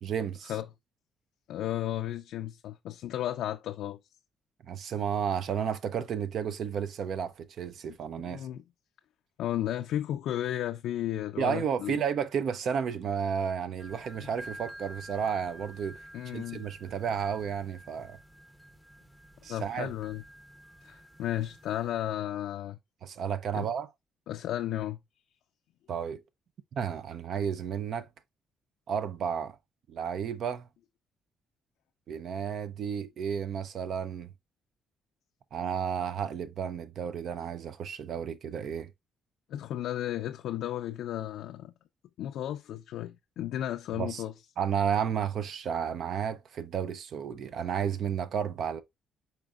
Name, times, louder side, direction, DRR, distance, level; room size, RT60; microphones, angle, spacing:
voice 1, 0.0-0.5 4.7-8.5 11.4-16.0 16.3-18.2 19.4-19.9 23.0-23.9 25.9-26.2 26.8-28.1 28.9-29.6 29.9-30.7 32.1-34.3 35.5-38.9 44.0-44.2 44.6-48.8, right 7 dB, 65° right, 0.5 m, -32 dB
voice 2, 1.5-4.0 7.9-8.0 8.2-8.6 9.4-12.0 16.1-16.6 19.5-20.2 20.8-22.8 23.5-23.7 24.3-25.0 39.5-41.7 42.2-44.3, left 12 dB, 85° left, 0.3 m, -34 dB
sound 1, 13.8-22.1, equal, 10° right, 0.7 m, -50 dB
4.9 x 4.4 x 2.3 m
cardioid pair, 90°, 0 cm